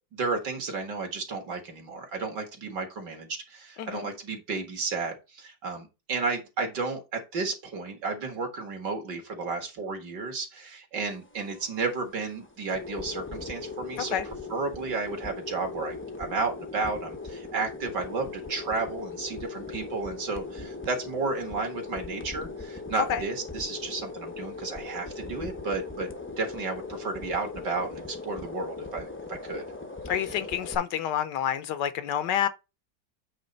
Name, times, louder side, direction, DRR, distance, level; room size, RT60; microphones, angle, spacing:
voice 1, 0.1-29.7, right 4 dB, 65° right, 2.5 m, -33 dB
sound 1, 11.1-30.8, left 3 dB, 20° left, 0.3 m, -39 dB
voice 2, 30.1-32.5, left 9 dB, 75° left, 1.2 m, -28 dB
8.6 x 3.2 x 5.2 m
omnidirectional pair, 2.0 m